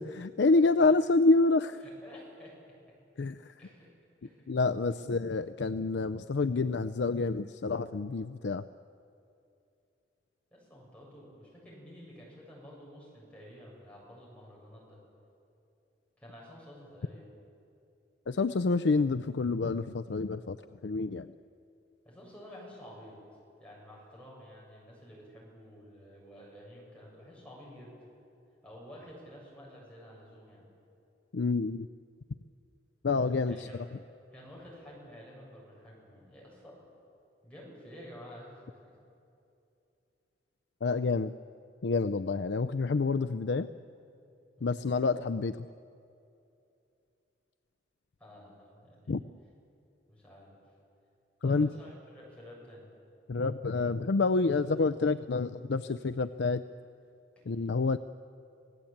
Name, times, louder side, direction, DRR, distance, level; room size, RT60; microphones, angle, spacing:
voice 1, 0.0-1.8 3.2-3.5 4.5-8.6 18.3-20.6 20.8-21.3 31.3-31.9 33.0-33.7 40.8-41.3 41.8-43.7 44.6-45.7 49.1-49.2 51.4-51.7 53.3-56.6 57.5-58.0, left 3 dB, 70° left, 10 dB, 0.5 m, -28 dB
voice 2, 1.8-2.5 3.6-3.9 4.2-4.4 10.5-15.0 16.2-17.3 22.0-23.2 23.6-27.9 28.6-30.6 33.5-33.8 34.3-36.8 37.4-38.9 44.6-44.8 48.2-49.2 50.1-50.6 51.4-52.9 57.4-57.5, equal, 5° left, -5 dB, 7.6 m, -51 dB
28.0 x 18.0 x 8.7 m, 2.7 s
head